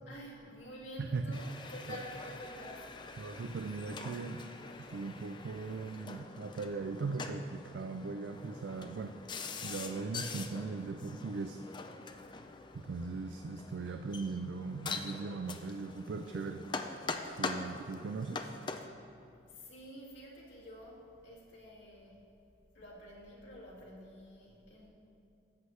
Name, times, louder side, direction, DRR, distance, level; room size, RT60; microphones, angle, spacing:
voice 1, 0.1-2.9 19.5-22.2 22.7-24.9, equal, 85° left, -5 dB, 2.3 m, -49 dB
voice 2, 1.0-1.4 1.9-2.0 3.2-4.4 4.9-9.1 9.6-11.6 12.7-16.6 17.4-18.5, right 4 dB, 75° right, 6 dB, 0.4 m, -39 dB
sound 1, 1.3-18.9, left 4 dB, 25° left, 0.4 m, -44 dB
13.5 x 7.8 x 3.2 m, 2.7 s
head